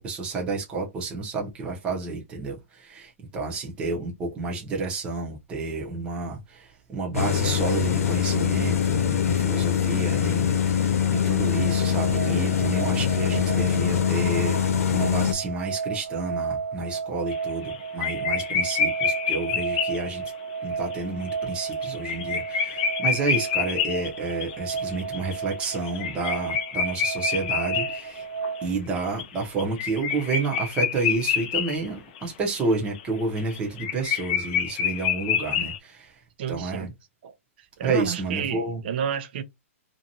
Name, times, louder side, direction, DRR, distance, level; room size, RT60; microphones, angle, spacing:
voice 1, 0.0-14.6 14.9-20.2 20.6-28.2 28.6-36.1 36.5-36.9 37.8-38.8, right 3 dB, 15° right, 0.8 m, -30 dB
sound 1, 7.1-15.3, left 8 dB, 85° left, 0.8 m, -23 dB
sound 2, 10.6-28.7, right 6 dB, 80° right, 0.7 m, -33 dB
sound 3, 17.3-17.7 18.0-20.3 20.9-21.0 21.3-21.4 21.7-28.6 29.0-31.9 32.1-32.2 32.5-35.8, left 7 dB, 35° left, 0.5 m, -27 dB
voice 2, 36.4-36.9 37.2-39.4, right 8 dB, 45° right, 0.7 m, -31 dB
2.7 x 2.4 x 2.8 m
hypercardioid pair, 160°, 8 cm